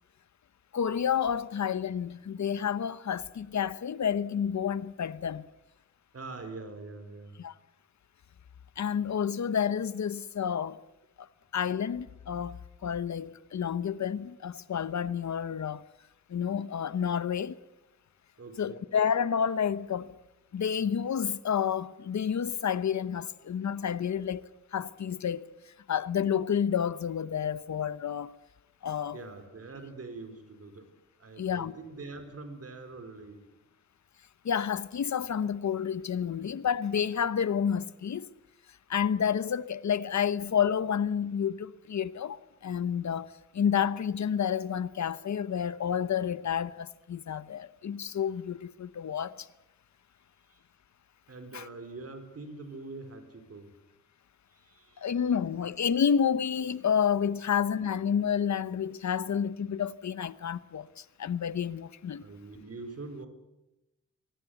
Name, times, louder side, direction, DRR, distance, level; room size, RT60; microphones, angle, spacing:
voice 1, 0.7-5.5 7.4-7.5 8.8-10.8 11.2-11.3 11.5-15.8 16.3-17.6 18.6-20.1 20.5-24.4 24.7-25.5 25.9-28.3 28.8-29.2 31.4-31.7 34.4-38.3 38.9-49.5 51.5-51.7 55.0-62.2, left 8 dB, 70° left, 1.0 m, -30 dB
voice 2, 6.1-7.4 18.4-18.8 29.1-33.4 50.5-50.6 51.3-53.8 54.5-55.1 62.2-63.3, right 3 dB, 55° right, 4.3 m, -44 dB
24.0 x 18.0 x 8.2 m
wide cardioid pair, 115°, 29 cm